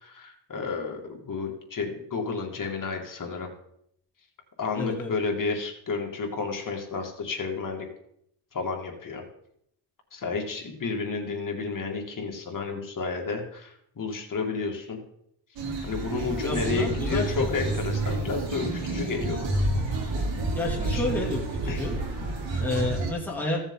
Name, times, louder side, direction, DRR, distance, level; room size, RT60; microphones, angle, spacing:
voice 1, 0.0-3.5 4.6-7.9 8.5-9.2 10.1-15.0 15.8-19.6 20.8-21.1 21.7-22.0, left 4 dB, 45° left, 2 dB, 2.4 m, -31 dB
voice 2, 4.8-5.1 16.4-17.6 20.5-22.0 22.5-23.6, left 2 dB, 5° left, -4 dB, 2.8 m, -30 dB
sound 1, 15.6-23.1, right 2 dB, 75° right, 3.1 m, -29 dB
15.0 x 7.0 x 3.9 m, 0.73 s
cardioid pair, 90°, 44 cm